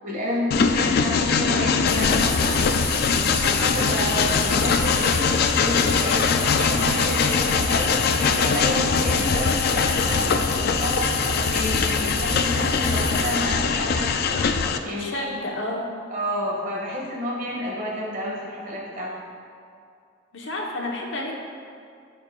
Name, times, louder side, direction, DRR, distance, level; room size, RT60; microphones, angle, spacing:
voice 1, 0.0-2.6 3.3-15.4 16.1-19.1, equal, 45° right, -5 dB, 1.9 m, -30 dB
Train, 0.5-14.8, left 5 dB, 50° left, 0.4 m, -22 dB
sound 1, 1.8-13.4, left 1 dB, 10° left, 1.3 m, -31 dB
voice 2, 14.8-15.9 20.3-21.3, left 1 dB, 70° left, -1 dB, 1.1 m, -30 dB
14.0 x 5.2 x 2.4 m, 2.4 s
head